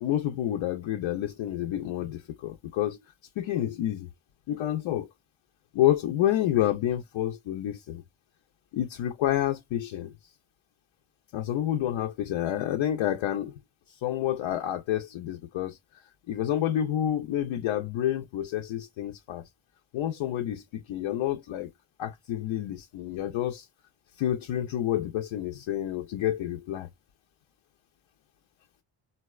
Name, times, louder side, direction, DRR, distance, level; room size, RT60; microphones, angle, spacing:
voice 1, 0.0-3.0 3.4-4.1 4.5-5.1 5.7-8.0 8.7-10.1 11.3-13.5 14.0-15.8 16.3-19.4 19.9-21.7 22.0-23.6 24.2-26.9, left 12 dB, 70° left, 0.7 m, -29 dB
4.0 x 2.1 x 2.3 m
supercardioid pair, 60°, 49 cm